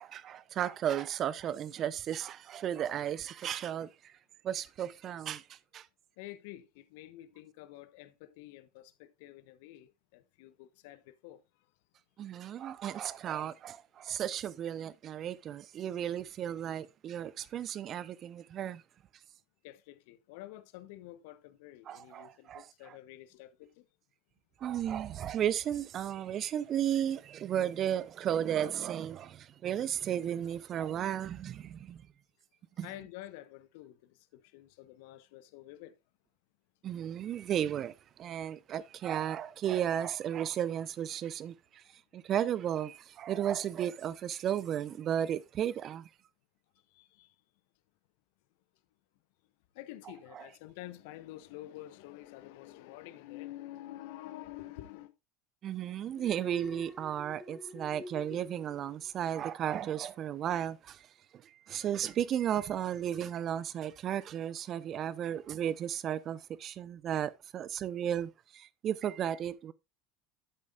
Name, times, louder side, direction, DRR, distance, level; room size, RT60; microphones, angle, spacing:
voice 1, 0.0-4.1 4.4-5.4 5.7-5.9 12.2-18.8 21.9-22.7 24.6-32.0 32.8-32.9 36.8-41.8 42.1-46.1 55.6-61.0 61.3-61.4 61.7-69.7, right 10 dB, 45° right, 0.8 m, -34 dB
voice 2, 6.2-11.7 19.6-23.9 32.8-36.0 43.3-43.4 46.9-47.3 49.7-55.1, left 15 dB, 70° left, 0.9 m, -49 dB
Alarm, 56.1-59.5 59.8-60.2, left 2 dB, 20° left, 2.9 m, -49 dB
11.5 x 8.2 x 2.5 m
hypercardioid pair, 80°, 0 cm